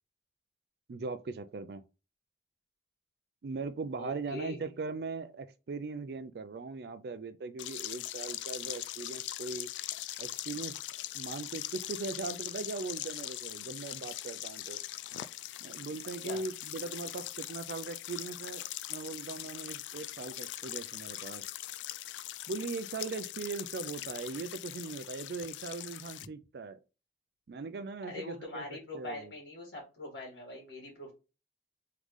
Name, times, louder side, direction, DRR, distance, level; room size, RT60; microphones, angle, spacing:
voice 1, 0.9-1.8 3.4-9.7 10.2-10.7 11.1-14.8 15.6-21.4 22.5-26.8 27.5-29.3, right 4 dB, 60° right, 0.4 m, -40 dB
voice 2, 3.9-4.6 16.2-16.4 28.1-31.1, left 2 dB, 70° left, 2.1 m, -42 dB
sound 1, 7.6-26.3, left 14 dB, 85° left, 0.3 m, -41 dB
3.8 x 3.6 x 3.1 m
head